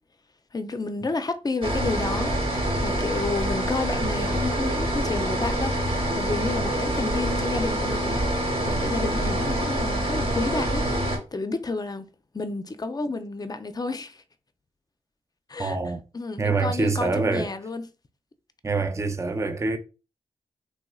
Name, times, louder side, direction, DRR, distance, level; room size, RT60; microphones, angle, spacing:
voice 1, 0.5-8.3 8.6-12.1 12.3-14.2 15.5-15.8 16.1-17.9, left 3 dB, 30° left, 0.5 m, -31 dB
sound 1, 1.6-11.2, right 1 dB, 45° right, 1.3 m, -26 dB
voice 2, 15.6-16.0 16.4-17.5 18.6-19.8, right 3 dB, 20° right, 0.5 m, -25 dB
3.0 x 2.9 x 2.3 m
supercardioid pair, 40°, 13 cm